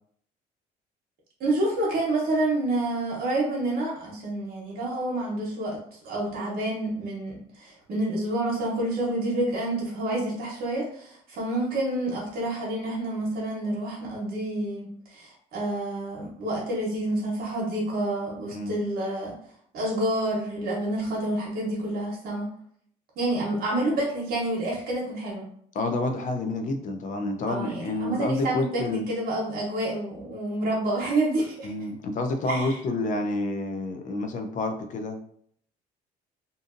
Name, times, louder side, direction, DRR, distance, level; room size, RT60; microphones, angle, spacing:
voice 1, 1.4-5.8 6.0-19.4 19.7-22.5 23.2-25.5 27.5-31.7 32.5-32.7, right 1 dB, 65° right, -3 dB, 0.9 m, -28 dB
voice 2, 25.7-29.1 31.6-35.2, left 2 dB, 50° left, 5 dB, 0.5 m, -29 dB
2.6 x 2.5 x 2.5 m, 0.64 s
cardioid pair, 110°, 17 cm